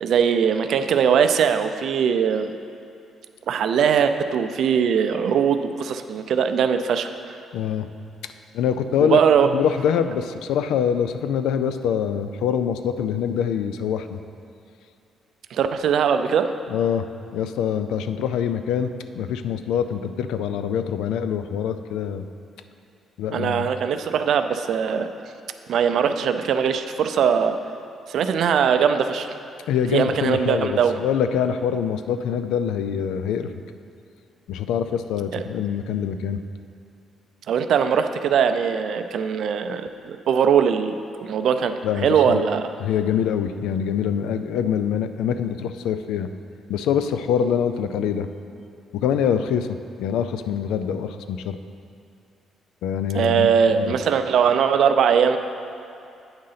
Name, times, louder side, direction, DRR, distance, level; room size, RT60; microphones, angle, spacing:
voice 1, 0.0-2.5 3.5-7.4 9.0-9.5 15.5-16.5 23.3-25.1 25.7-27.6 28.1-29.3 29.9-31.0 35.3-35.4 37.5-40.9 41.2-42.7 53.1-55.4, right 7 dB, 70° right, 8 dB, 0.4 m, -21 dB
voice 2, 7.5-7.9 8.5-9.2 9.5-14.2 16.7-17.1 17.3-22.2 23.2-23.7 29.7-33.5 34.5-36.4 41.8-42.4 42.8-46.3 46.7-48.3 48.9-51.6 52.8-53.9, left 8 dB, 90° left, 10 dB, 0.3 m, -24 dB
8.8 x 3.8 x 5.7 m, 2.5 s
cardioid pair, 90°, 0 cm